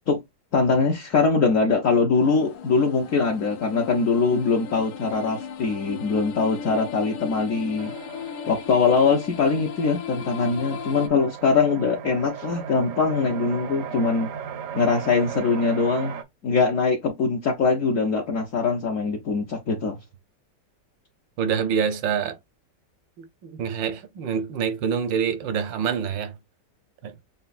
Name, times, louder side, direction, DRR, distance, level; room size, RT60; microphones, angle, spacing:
voice 1, 0.5-7.9 8.5-14.3 14.7-16.2 16.4-20.0, left 4 dB, 55° left, 1.0 m, -22 dB
sound 1, 2.1-11.1, left 7 dB, 80° left, 1.4 m, -37 dB
sound 2, 7.8-16.2, right 8 dB, 70° right, 0.8 m, -38 dB
voice 2, 21.4-22.4 23.2-26.3 27.0-27.1, right 7 dB, 90° right, 1.5 m, -26 dB
6.9 x 2.3 x 2.4 m
omnidirectional pair, 1.9 m